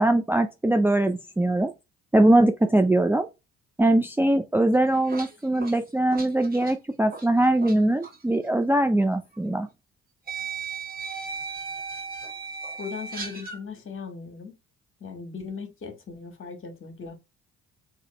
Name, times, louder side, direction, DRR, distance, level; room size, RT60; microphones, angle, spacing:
voice 1, 0.0-1.7 2.1-3.3 3.8-9.7, right 1 dB, 5° right, 0.5 m, -21 dB
sound 1, 4.7-7.8 8.0-8.2 9.3-9.4 10.3-13.6, right 5 dB, 30° right, 1.7 m, -36 dB
voice 2, 12.8-14.6 15.0-17.1, left 5 dB, 40° left, 1.7 m, -38 dB
4.0 x 2.9 x 4.4 m
hypercardioid pair, 55°, 31 cm